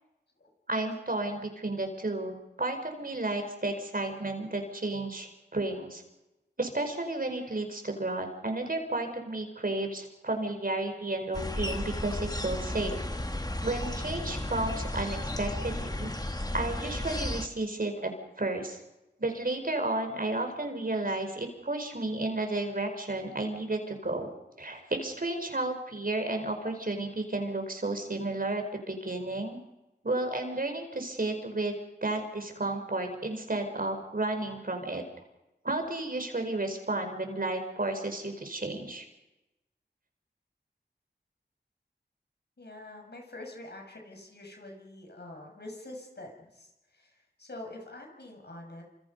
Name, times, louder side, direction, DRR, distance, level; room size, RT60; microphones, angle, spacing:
voice 1, 0.7-6.0 6.6-13.0 13.6-16.1 16.5-18.1 18.4-18.8 19.2-24.3 24.6-29.6 30.0-35.0 35.6-39.1, right 2 dB, 50° right, 5 dB, 4.9 m, -32 dB
sound 1, 11.3-17.5, left 1 dB, 20° left, 1.7 m, -34 dB
voice 2, 42.6-48.8, left 1 dB, 70° left, 2 dB, 6.5 m, -46 dB
28.0 x 27.0 x 5.4 m, 0.99 s
wide cardioid pair, 70°, 18 cm